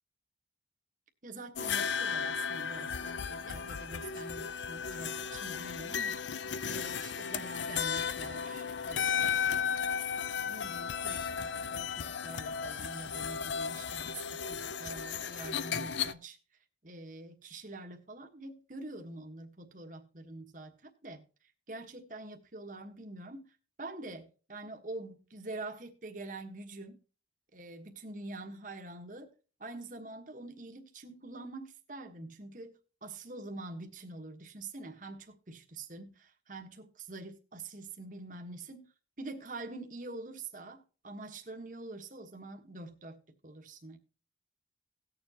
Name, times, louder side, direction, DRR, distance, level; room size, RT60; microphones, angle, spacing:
voice 1, 1.2-9.4 10.4-14.2 14.5-16.4 16.8-21.2 21.7-27.0 27.5-29.3 29.6-38.9 39.2-44.0, right 2 dB, 45° right, 1.3 m, -45 dB
sound 1, 1.6-16.1, left 7 dB, 75° left, 0.5 m, -35 dB
18.0 x 7.0 x 2.9 m
head